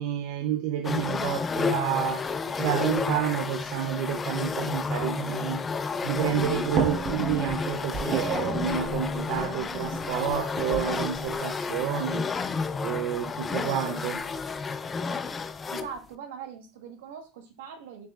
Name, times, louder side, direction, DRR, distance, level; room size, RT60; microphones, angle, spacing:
voice 1, 0.0-5.6 6.0-12.3 12.8-14.2, right 10 dB, 65° right, 0.5 m, -30 dB
sound 1, 0.8-16.0, left 4 dB, 20° left, 0.4 m, -31 dB
sound 2, 6.2-11.3, right 7 dB, 50° right, 1.0 m, -33 dB
voice 2, 15.7-18.1, right 7 dB, 85° right, 1.2 m, -41 dB
6.6 x 3.2 x 2.3 m
supercardioid pair, 120°, 0 cm